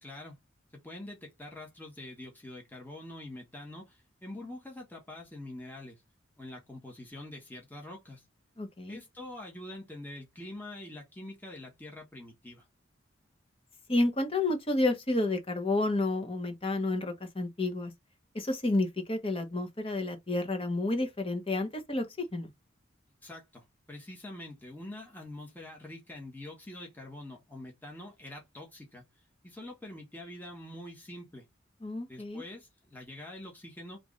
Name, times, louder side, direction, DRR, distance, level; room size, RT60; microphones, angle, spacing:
voice 1, 0.0-0.4 0.7-6.0 6.4-8.2 8.9-12.7 23.2-29.0 29.4-31.4 32.1-34.0, left 1 dB, 10° left, 1.3 m, -45 dB
voice 2, 8.6-9.0 13.9-17.9 18.3-22.1 22.3-22.5 31.8-32.4, left 2 dB, 30° left, 1.0 m, -30 dB
3.4 x 3.1 x 3.8 m
head